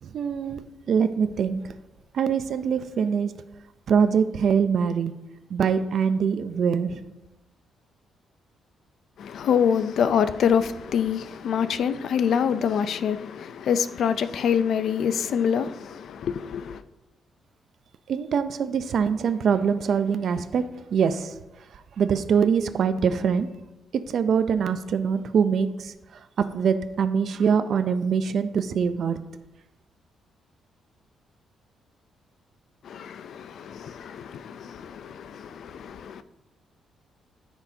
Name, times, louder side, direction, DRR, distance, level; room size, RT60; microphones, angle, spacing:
voice 1, 0.0-1.7 2.1-3.3 3.9-5.1 5.5-7.0 18.1-20.6 20.9-21.3 21.7-23.5 23.9-25.9 26.4-29.2, right 6 dB, 55° right, 0.5 m, -23 dB
voice 2, 9.2-16.8 32.8-36.2, left 7 dB, 60° left, 0.4 m, -26 dB
13.5 x 6.1 x 2.8 m
cardioid pair, 140°, 0 cm